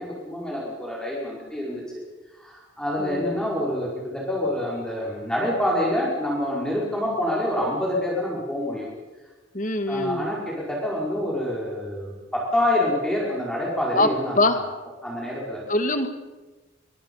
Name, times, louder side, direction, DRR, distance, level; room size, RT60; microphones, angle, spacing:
voice 1, 0.0-1.8 2.4-8.9 9.9-14.6 15.0-15.6, left 1 dB, 5° left, -5 dB, 5.3 m, -27 dB
voice 2, 3.0-3.4 9.5-10.3 14.0-14.1 14.4-14.6 15.7-16.1, left 2 dB, 40° left, 8 dB, 1.9 m, -23 dB
24.5 x 24.0 x 5.7 m, 1.2 s
head